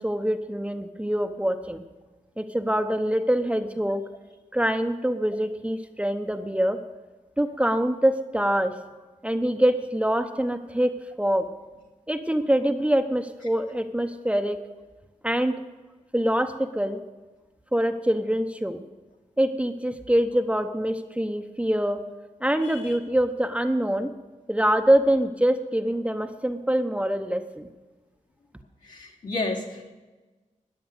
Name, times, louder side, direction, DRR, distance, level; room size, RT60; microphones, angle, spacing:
voice 1, 0.0-1.8 2.4-4.0 4.5-6.8 7.4-8.7 9.2-11.5 12.1-14.6 15.2-15.6 16.1-17.0 17.7-18.8 19.4-22.0 22.4-24.1 24.5-27.7, right 1 dB, 10° right, 7 dB, 0.9 m, -24 dB
voice 2, 22.6-23.0 28.8-29.9, left 2 dB, 70° left, -3 dB, 2.9 m, -32 dB
14.0 x 9.5 x 6.6 m, 1.2 s
wide cardioid pair, 80°, 14 cm